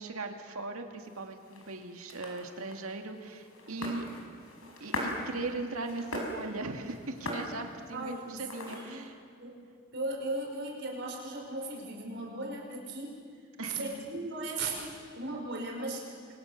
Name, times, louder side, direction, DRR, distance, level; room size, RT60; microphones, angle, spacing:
voice 1, 0.0-4.1 4.8-9.2 13.6-13.8, right 3 dB, 80° right, 4 dB, 2.1 m, -39 dB
sound 1, 1.0-9.1, left 1 dB, 80° left, 5.1 m, -41 dB
voice 2, 7.9-9.1 9.4-9.6 9.9-13.2 13.6-16.1, right 2 dB, 50° right, -1 dB, 5.5 m, -37 dB
30.0 x 23.5 x 6.7 m, 2.1 s
head